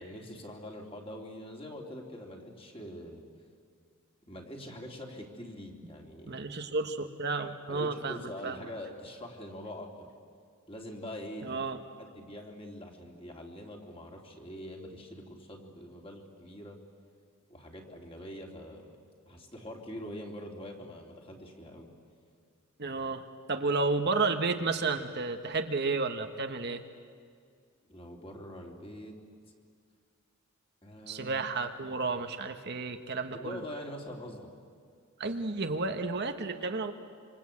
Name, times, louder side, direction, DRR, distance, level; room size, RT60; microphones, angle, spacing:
voice 1, 0.0-3.2 4.2-6.4 7.7-10.1 10.7-11.6 12.0-16.8 17.5-18.8 19.3-21.9 27.9-29.2 30.8-31.4 33.3-34.5, equal, 25° left, 1 dB, 3.1 m, -44 dB
voice 2, 6.3-8.6 11.4-11.8 22.8-26.8 31.1-33.6 35.2-36.9, right 3 dB, 50° right, 6 dB, 1.2 m, -32 dB
26.5 x 25.5 x 8.6 m, 2.2 s
head